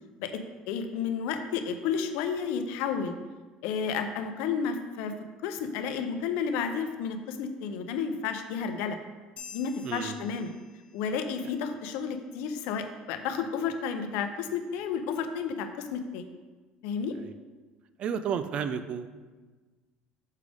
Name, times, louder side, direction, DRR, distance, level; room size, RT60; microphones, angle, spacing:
voice 1, 0.7-3.1 3.6-5.1 5.4-9.0 9.5-10.5 10.9-16.2 16.8-17.1, left 6 dB, 80° left, 7 dB, 0.6 m, -31 dB
sound 1, 9.4-11.2, left 6 dB, 45° left, 0.8 m, -48 dB
voice 2, 9.8-10.2 17.2-17.3 18.0-19.1, right 7 dB, 45° right, 11 dB, 0.4 m, -32 dB
6.5 x 5.1 x 3.4 m, 1.3 s
cardioid pair, 135°, 3 cm